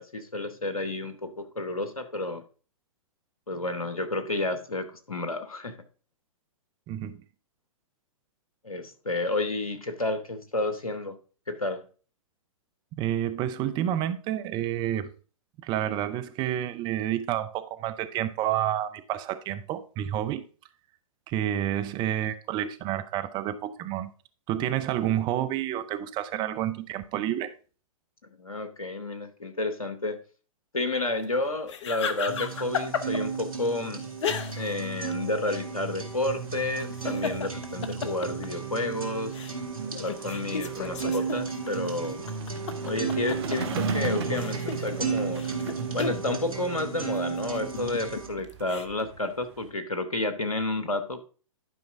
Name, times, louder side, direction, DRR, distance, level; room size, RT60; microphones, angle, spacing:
voice 1, 0.0-2.4 3.5-5.8 8.6-11.2 11.5-11.8 28.4-30.2 30.7-34.1 34.5-39.3 40.0-42.3 42.8-45.4 45.9-51.2, left 2 dB, 85° left, 1.2 m, -31 dB
voice 2, 6.9-7.2 12.9-15.1 15.6-20.4 21.3-24.1 24.5-27.5, right 11 dB, 25° right, 0.7 m, -29 dB
sound 1, 31.7-33.4 34.2-34.9 35.1-35.2 36.7-38.9 39.3-39.5 39.9-43.8 44.2-46.3 47.3-48.9, left 6 dB, 60° left, 1.0 m, -33 dB
sound 2, 32.3-48.3, right 5 dB, 85° right, 2.4 m, -34 dB
sound 3, 35.9-49.7, right 6 dB, 50° right, 1.3 m, -41 dB
11.0 x 5.3 x 3.7 m
figure-of-eight pair, 120°, 17 cm